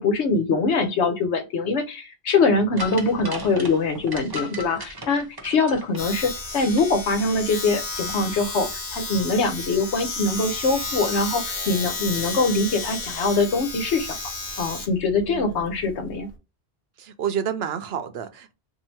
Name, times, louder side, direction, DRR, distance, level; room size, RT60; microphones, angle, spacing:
voice 1, 0.0-14.2 14.6-16.3, left 3 dB, 90° left, 1.1 m, -23 dB
sound 1, 2.8-6.8 7.1-7.2, left 1 dB, 25° right, 0.6 m, -36 dB
Domestic sounds home sounds, 6.0-16.4, left 3 dB, 45° left, 1.0 m, -32 dB
voice 2, 15.3-15.7 17.0-18.5, right 8 dB, 70° right, 0.8 m, -30 dB
2.8 x 2.7 x 4.3 m
omnidirectional pair, 1.1 m